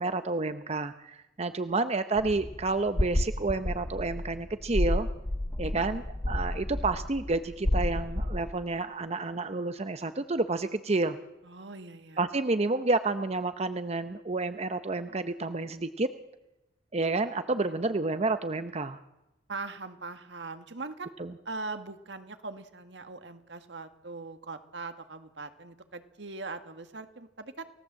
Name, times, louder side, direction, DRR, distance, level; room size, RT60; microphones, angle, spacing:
voice 1, 0.0-5.1 5.6-11.2 12.2-16.1 16.9-19.0 21.2-21.3, right 3 dB, 35° right, 10 dB, 0.8 m, -30 dB
sound 1, 2.2-8.5, left 1 dB, 25° left, 0.9 m, -31 dB
voice 2, 11.4-12.3 17.5-17.8 19.5-21.1 21.5-27.6, right 3 dB, 75° right, 8 dB, 1.8 m, -41 dB
29.5 x 17.5 x 7.5 m, 0.98 s
head